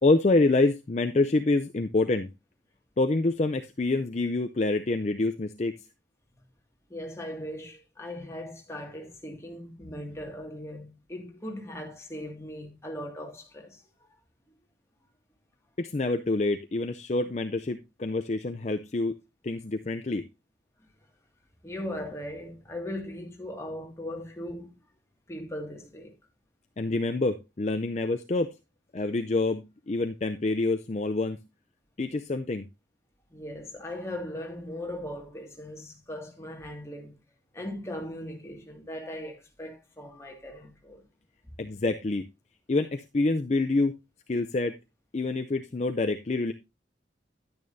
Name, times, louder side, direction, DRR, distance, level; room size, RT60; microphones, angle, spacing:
voice 1, 0.0-2.3 3.0-5.7 15.8-19.1 19.4-20.3 26.8-28.6 28.9-31.4 32.0-32.7 41.6-42.2 42.7-43.9 44.3-44.8 45.1-46.5, left 2 dB, 40° left, 0.5 m, -26 dB
voice 2, 6.9-13.8 21.6-24.8 25.3-26.1 33.3-37.2 37.5-41.0, left 1 dB, 15° left, 2.0 m, -39 dB
10.5 x 9.6 x 2.6 m
head